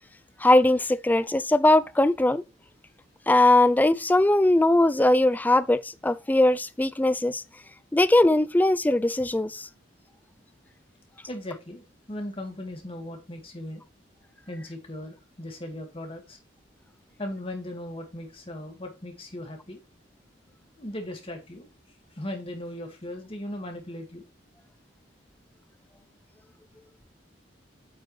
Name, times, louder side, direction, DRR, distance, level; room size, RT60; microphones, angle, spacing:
voice 1, 0.4-2.4 3.3-7.4 7.9-9.7, left 1 dB, 10° left, 0.3 m, -20 dB
voice 2, 11.3-13.8 14.5-16.4 17.2-19.8 20.8-21.7 22.1-24.2, left 1 dB, 30° left, 1.8 m, -38 dB
9.0 x 4.7 x 3.1 m
head